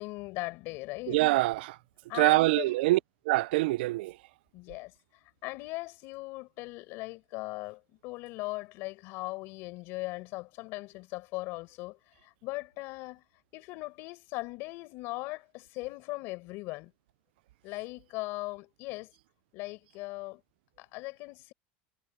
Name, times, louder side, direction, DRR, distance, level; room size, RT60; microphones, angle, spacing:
voice 1, 0.0-1.3 2.1-2.8 4.5-13.2 13.5-16.9 17.6-19.1 19.5-20.4 20.8-21.5, left 22 dB, 45° left, 5.7 m, -39 dB
voice 2, 1.1-1.8 2.2-3.0 3.3-4.1, right 20 dB, 90° right, 0.4 m, -24 dB
cardioid pair, 175°, 5 cm